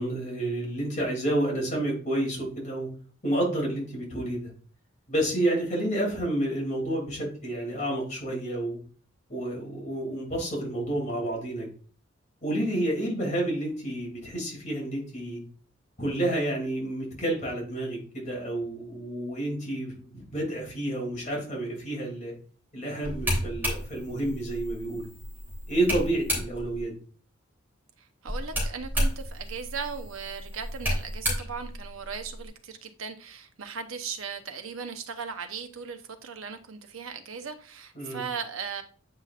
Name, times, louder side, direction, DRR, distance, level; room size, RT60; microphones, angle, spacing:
voice 1, 0.0-2.9 3.2-4.5 5.1-8.8 9.3-11.7 12.4-15.4 16.0-22.3 22.7-25.1 25.7-26.9 37.9-38.2, right 1 dB, 40° left, 2.9 m, -30 dB
sound 1, 23.0-26.8 28.3-32.5, equal, 10° right, 3.2 m, -32 dB
voice 2, 28.0-38.8, right 6 dB, 90° right, 0.9 m, -38 dB
8.7 x 5.7 x 2.5 m
head